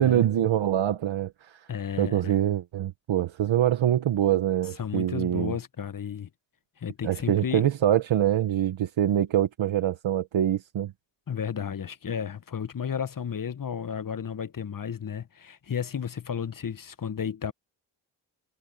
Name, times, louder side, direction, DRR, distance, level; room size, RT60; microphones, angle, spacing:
voice 1, 0.0-1.7 2.0-5.5 7.0-10.9, right 11 dB, 85° right, 1.2 m, -24 dB
voice 2, 1.7-2.4 4.8-6.3 6.8-7.7 11.3-17.5, left 7 dB, 45° left, 1.0 m, -33 dB
cardioid pair, 40°, 45 cm